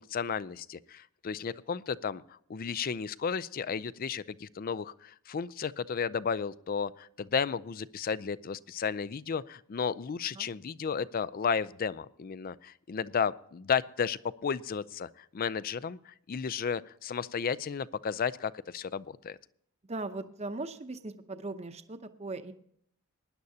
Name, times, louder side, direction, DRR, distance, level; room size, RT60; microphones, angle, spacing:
voice 1, 0.0-19.4, left 6 dB, 40° left, 18 dB, 0.4 m, -33 dB
voice 2, 19.9-22.5, right 2 dB, 30° right, 9 dB, 0.8 m, -39 dB
19.5 x 10.5 x 2.8 m, 0.66 s
head